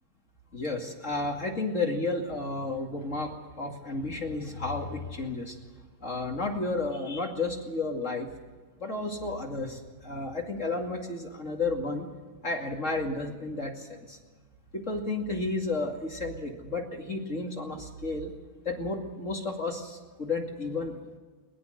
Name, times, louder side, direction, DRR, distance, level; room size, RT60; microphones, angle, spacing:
voice 1, 0.5-5.6 6.0-8.3 8.8-12.1 12.4-14.2 14.7-18.3 18.6-21.0, left 3 dB, 30° left, 1 dB, 1.4 m, -32 dB
22.0 x 20.0 x 6.5 m, 1.4 s
omnidirectional pair, 4.9 m